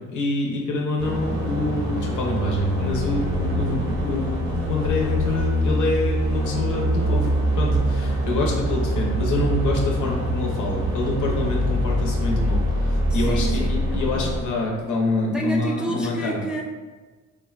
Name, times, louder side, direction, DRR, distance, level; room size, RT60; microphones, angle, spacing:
voice 1, 0.0-7.3 7.6-16.4, left 2 dB, 80° left, -1 dB, 0.7 m, -26 dB
sound 1, 1.0-14.4, equal, 80° right, 0.9 m, -24 dB
sound 2, 2.9-9.1, left 3 dB, 15° left, 0.8 m, -35 dB
sound 3, 3.5-3.6 4.3-4.4 5.2-5.3 6.0-6.1 6.9-7.0 7.7-7.8 8.5-8.7 9.0-9.3 9.5-9.8 10.1-10.4 10.7-11.6 11.8-13.2, right 2 dB, 50° right, 0.7 m, -33 dB
voice 2, 13.1-14.3 15.3-16.6, right 1 dB, 5° right, -1 dB, 0.3 m, -30 dB
3.6 x 2.1 x 2.4 m, 1.3 s
cardioid pair, 90°, 30 cm